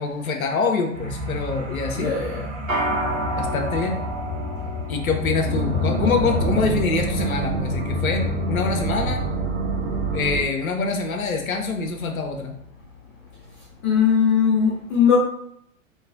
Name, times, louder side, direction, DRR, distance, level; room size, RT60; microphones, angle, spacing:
voice 1, 0.0-2.1 3.4-4.0 4.9-9.2 10.1-12.6, left 4 dB, 80° left, 4 dB, 0.5 m, -25 dB
sound 1, 0.9-6.7, left 2 dB, 15° right, 1.0 m, -30 dB
voice 2, 1.9-2.5 13.8-15.1, left 7 dB, 20° left, -6 dB, 0.5 m, -19 dB
sound 2, 2.7-12.2, equal, 75° right, 0.9 m, -33 dB
sound 3, 5.4-10.4, right 2 dB, 40° right, 0.7 m, -26 dB
2.4 x 2.3 x 2.4 m, 0.71 s
figure-of-eight pair, 100°, 41 cm